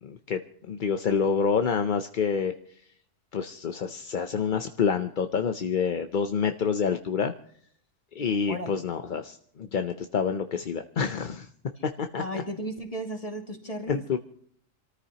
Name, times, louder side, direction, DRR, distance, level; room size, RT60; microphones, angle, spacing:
voice 1, 0.0-0.4 0.7-2.5 3.3-7.3 8.2-11.5 11.8-12.4 13.9-14.2, left 6 dB, 45° left, 7 dB, 0.7 m, -27 dB
voice 2, 8.2-8.8 12.2-14.0, equal, 25° left, 3 dB, 2.3 m, -35 dB
27.5 x 14.0 x 2.9 m, 0.64 s
omnidirectional pair, 1.4 m